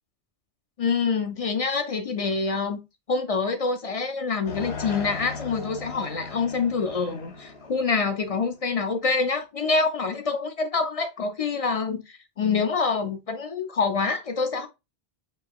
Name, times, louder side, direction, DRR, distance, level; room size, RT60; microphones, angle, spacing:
voice 1, 0.8-2.8 3.1-14.7, left 4 dB, 50° left, 0.5 m, -26 dB
sound 1, 4.5-8.8, left 4 dB, 80° left, 1.2 m, -38 dB
5.3 x 2.8 x 2.2 m
omnidirectional pair, 1.0 m